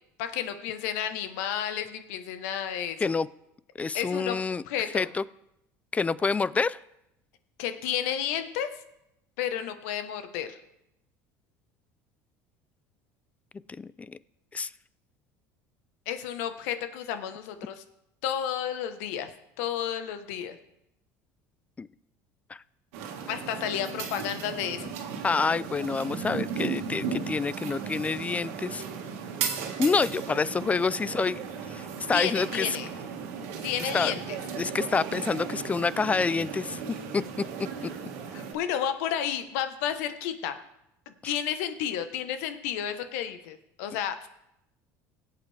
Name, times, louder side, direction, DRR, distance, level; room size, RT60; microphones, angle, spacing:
voice 1, 0.2-3.0 3.9-4.4 4.6-5.1 7.6-8.7 9.4-10.6 16.1-17.8 18.2-19.3 19.6-20.6 23.3-24.9 32.1-32.9 33.6-34.4 38.3-40.6 41.2-44.3, left 9 dB, 80° left, 9 dB, 1.1 m, -31 dB
voice 2, 3.8-4.6 4.9-5.2 5.9-6.8 13.8-14.2 14.5-14.7 21.8-21.9 22.5-22.6 25.2-28.8 29.8-31.4 31.7-32.7 33.8-34.1 34.6-36.8 37.1-37.2 41.2-41.3, left 4 dB, 15° left, 19 dB, 0.4 m, -27 dB
sound 1, 22.9-38.5, right 6 dB, 80° right, 1.8 m, -36 dB
17.5 x 8.2 x 3.4 m, 0.83 s
supercardioid pair, 105°, 8 cm